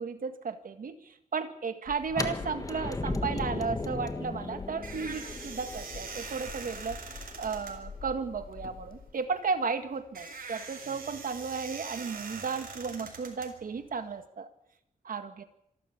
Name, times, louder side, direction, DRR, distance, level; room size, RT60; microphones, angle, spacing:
voice 1, 0.0-7.0 7.4-14.5 15.0-15.4, right 5 dB, 75° right, 9 dB, 1.8 m, -34 dB
sound 1, 1.9-9.1, left 5 dB, 85° left, 1.9 m, -47 dB
sound 2, 2.1-8.0, left 2 dB, 25° left, 1.5 m, -37 dB
sound 3, 4.2-14.2, right 4 dB, 90° right, 4.3 m, -44 dB
26.0 x 12.5 x 8.5 m, 0.77 s
wide cardioid pair, 165°, 15 cm